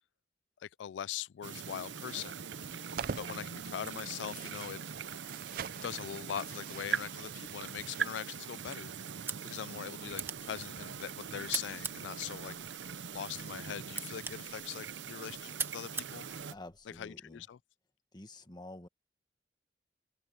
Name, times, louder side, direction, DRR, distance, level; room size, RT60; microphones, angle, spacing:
voice 1, 0.6-2.4 3.2-4.8 5.8-8.9 9.4-12.5 13.1-16.3 17.0-17.6, left 9 dB, 85° left, 0.3 m, -41 dB
sound 1, 1.4-16.5, right 7 dB, 85° right, 0.8 m, -42 dB
sound 2, 2.4-8.1, right 6 dB, 55° right, 0.5 m, -45 dB
sound 3, 11.3-17.1, right 4 dB, 15° right, 1.0 m, -44 dB
voice 2, 16.5-17.4 18.1-18.9, left 1 dB, 25° left, 1.6 m, -49 dB
open air
head